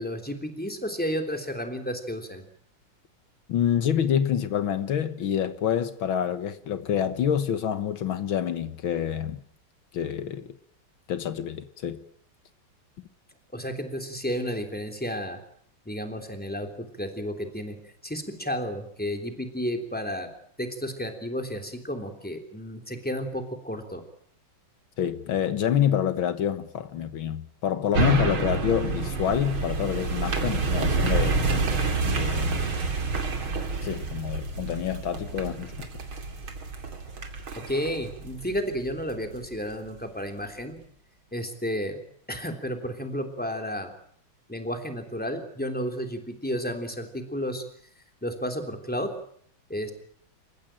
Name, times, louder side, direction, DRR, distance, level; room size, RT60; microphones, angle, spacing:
voice 1, 0.0-2.4 13.5-15.4 15.8-20.3 20.6-24.0 37.6-40.8 41.3-42.0 42.3-43.9 44.5-47.6 48.2-49.1 49.7-49.9, equal, 5° left, 3.2 m, -32 dB
voice 2, 3.5-9.4 9.9-10.5 11.1-12.0 25.0-31.4 32.0-32.7 33.8-35.7, left 9 dB, 75° left, 2.0 m, -27 dB
sound 1, 27.9-39.4 39.9-40.0, right 3 dB, 90° right, 3.5 m, -28 dB
29.0 x 15.5 x 8.9 m
omnidirectional pair, 2.2 m